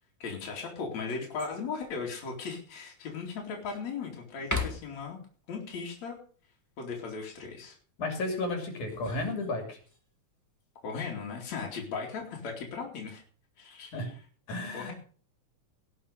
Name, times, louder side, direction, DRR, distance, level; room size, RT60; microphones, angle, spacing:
voice 1, 0.2-5.2 5.5-6.2 6.8-7.8 10.8-13.2 13.6-14.1 14.7-14.9, left 5 dB, 65° left, -1 dB, 3.9 m, -37 dB
sound 1, 1.4-1.8 2.4-2.5 3.0-3.9 4.4-5.1 8.6-10.0 11.4-11.9, left 3 dB, 10° left, 0.9 m, -38 dB
voice 2, 8.0-9.8 13.9-14.1 14.5-14.9, left 2 dB, 80° left, 4 dB, 4.4 m, -33 dB
18.0 x 7.3 x 6.5 m, 0.43 s
omnidirectional pair, 3.4 m